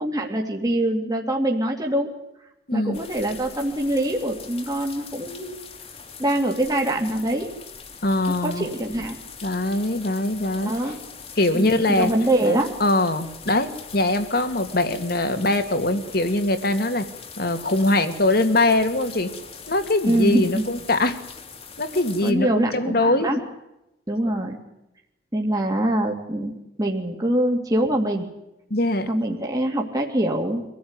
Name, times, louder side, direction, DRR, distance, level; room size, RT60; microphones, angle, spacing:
voice 1, 0.0-2.1 2.7-5.6 6.2-7.5 8.3-9.2 10.6-11.0 11.5-11.6 12.0-12.7 20.1-20.7 22.2-23.4 24.1-24.6 25.3-28.3 29.1-30.6, right 1 dB, 20° right, 1 dB, 2.5 m, -24 dB
voice 2, 2.7-3.0 8.0-8.7 9.4-10.7 11.4-12.1 12.5-17.1 17.4-19.3 19.7-21.2 21.8-23.3 28.7-29.1, left 2 dB, 60° left, 8 dB, 2.5 m, -22 dB
sound 1, 2.9-22.3, left 6 dB, 35° left, 2.4 m, -42 dB
25.5 x 16.0 x 9.7 m, 0.90 s
head